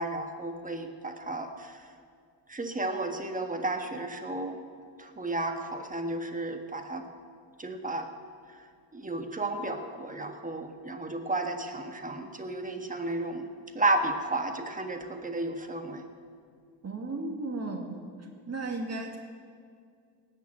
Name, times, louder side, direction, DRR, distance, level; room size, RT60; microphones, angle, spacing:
voice 1, 0.0-1.7 2.5-4.6 5.0-7.1 7.6-8.1 8.9-13.5 13.7-16.0, right 2 dB, 15° right, 6 dB, 1.5 m, -32 dB
voice 2, 16.8-19.2, right 2 dB, 30° right, 2 dB, 2.4 m, -35 dB
17.5 x 6.9 x 8.9 m, 2.2 s
cardioid pair, 95°, 48 cm